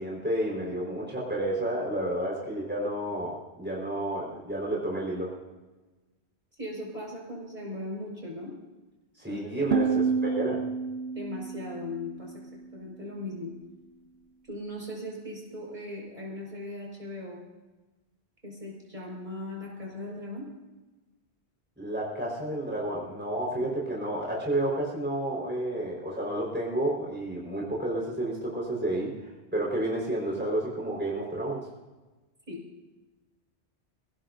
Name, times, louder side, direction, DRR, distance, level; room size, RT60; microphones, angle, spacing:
voice 1, 0.0-5.3 9.2-10.6 21.8-29.1 29.5-31.6, right 1 dB, 10° right, -5 dB, 4.6 m, -31 dB
voice 2, 6.6-8.5 9.3-9.9 11.1-12.3 12.7-13.5 14.5-17.4 18.4-20.5 32.5-32.6, left 1 dB, 45° right, -3 dB, 5.6 m, -38 dB
sound 1, 9.7-12.7, right 5 dB, 75° right, 1.1 m, -29 dB
28.0 x 17.0 x 2.7 m, 1.2 s
omnidirectional pair, 1.1 m